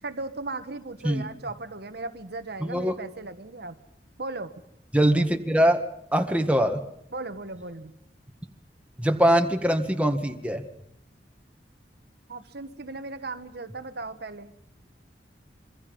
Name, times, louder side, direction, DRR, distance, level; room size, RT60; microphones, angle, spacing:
voice 1, 0.0-3.8 4.2-4.5 7.1-7.9 12.3-14.5, right 3 dB, 65° right, 8 dB, 1.4 m, -37 dB
voice 2, 4.9-5.8 6.1-6.8 9.0-10.7, equal, 10° right, 5 dB, 1.8 m, -22 dB
26.5 x 24.5 x 5.5 m, 0.75 s
head